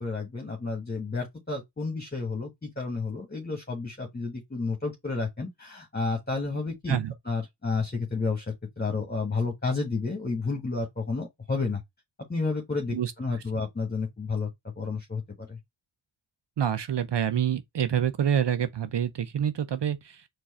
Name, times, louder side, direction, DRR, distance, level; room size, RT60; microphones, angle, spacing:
voice 1, 0.0-7.0 7.3-11.8 12.3-15.6, left 4 dB, 20° left, 1.5 m, -31 dB
voice 2, 12.9-13.4 16.6-20.3, right 9 dB, 60° right, 0.6 m, -27 dB
4.6 x 2.5 x 4.2 m
cardioid pair, 50°, 49 cm